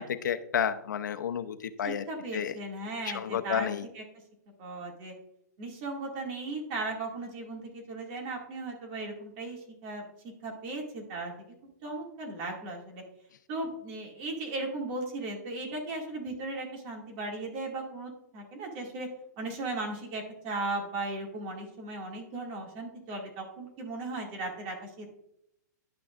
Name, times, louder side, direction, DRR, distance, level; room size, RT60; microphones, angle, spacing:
voice 1, 0.0-2.0 2.3-2.5 3.0-3.8, left 8 dB, 85° left, 10 dB, 0.7 m, -31 dB
voice 2, 1.8-3.7 3.9-4.0 4.6-5.1 5.6-11.3 11.8-13.0 13.5-19.1 19.4-25.1, right 2 dB, 35° right, 0 dB, 2.2 m, -37 dB
11.0 x 6.0 x 2.5 m, 0.77 s
hypercardioid pair, 160°, 10 cm